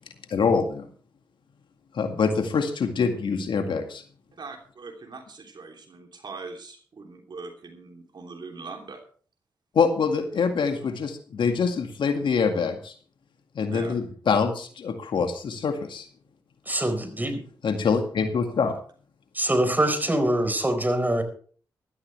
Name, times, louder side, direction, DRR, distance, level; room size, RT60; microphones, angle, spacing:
voice 1, 0.3-0.9 1.9-4.0 9.7-12.9 13.6-16.1 17.6-18.7, left 5 dB, 70° left, 6 dB, 2.1 m, -25 dB
voice 2, 4.4-9.0 13.7-14.0 20.0-20.1, right 4 dB, 55° right, 4 dB, 3.2 m, -41 dB
voice 3, 16.7-17.4 19.3-21.2, right 1 dB, 20° right, 8 dB, 4.6 m, -24 dB
16.5 x 13.5 x 3.4 m, 0.44 s
supercardioid pair, 40°, 9 cm